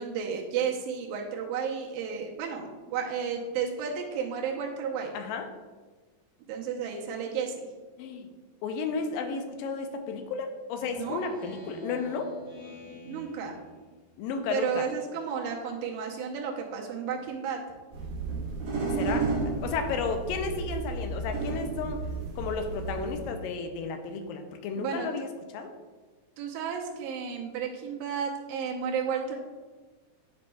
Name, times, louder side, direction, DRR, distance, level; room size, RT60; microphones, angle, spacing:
voice 1, 0.0-5.1 6.5-7.7 10.9-11.2 13.0-13.6 14.5-17.6 24.8-25.1 26.4-29.4, right 6 dB, 80° right, 0 dB, 2.5 m, -32 dB
voice 2, 5.1-5.5 8.0-8.3 8.6-12.3 14.2-14.8 18.9-19.3 19.6-22.0 22.4-25.3 25.5-25.7, left 5 dB, 85° left, 6 dB, 2.3 m, -33 dB
Speech synthesizer, 10.8-14.3, equal, 60° left, 3.3 m, -46 dB
sound 1, 17.9-23.3, right 3 dB, 60° right, 2.0 m, -32 dB
9.5 x 5.2 x 2.3 m, 1.3 s
omnidirectional pair, 4.0 m